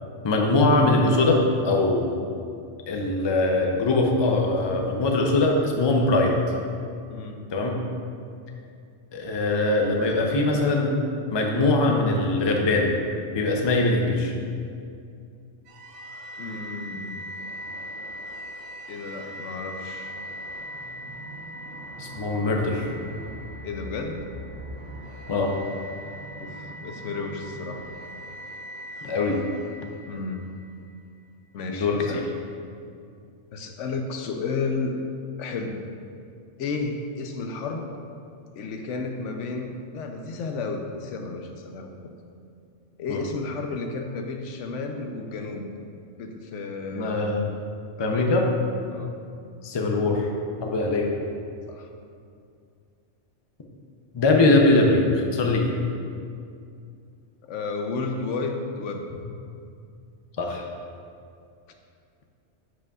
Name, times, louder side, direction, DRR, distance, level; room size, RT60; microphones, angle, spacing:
voice 1, 0.2-2.1 2.9-6.3 7.5-7.8 9.1-10.9 11.3-12.9 13.3-14.3 22.0-22.9 25.3-25.5 29.0-29.4 31.7-32.3 43.1-43.2 46.9-47.5 48.0-48.5 49.6-50.3 50.6-51.1 54.1-55.7 60.4-60.6, left 2 dB, 35° left, 1 dB, 0.5 m, -22 dB
voice 2, 7.1-7.4 16.4-17.3 18.9-20.1 23.6-24.3 26.4-27.9 29.0-29.1 29.8-30.5 31.5-32.3 33.5-35.0 35.4-35.8 36.6-37.9 38.5-42.2 43.0-45.7 46.2-47.3 48.0-48.3 48.9-49.2 51.7-51.9 57.4-59.1, left 4 dB, 80° left, 4 dB, 0.9 m, -32 dB
sound 1, 15.7-30.8, equal, 85° right, 1.2 m, -40 dB
9.9 x 5.1 x 2.4 m, 2.4 s
omnidirectional pair, 1.2 m